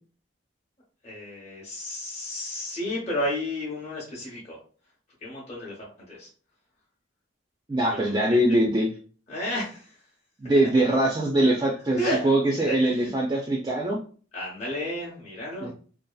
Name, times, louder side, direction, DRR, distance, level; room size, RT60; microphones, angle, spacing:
voice 1, 1.0-4.6 5.2-6.3 7.9-8.4 9.3-10.0 11.4-11.6 12.0-12.3 12.6-13.1 14.3-15.7, left 1 dB, 35° left, -6 dB, 0.7 m, -32 dB
voice 2, 7.7-8.9 10.4-14.0 15.6-15.7, right 1 dB, 20° right, -2 dB, 0.3 m, -22 dB
2.7 x 2.3 x 2.2 m, 0.40 s
head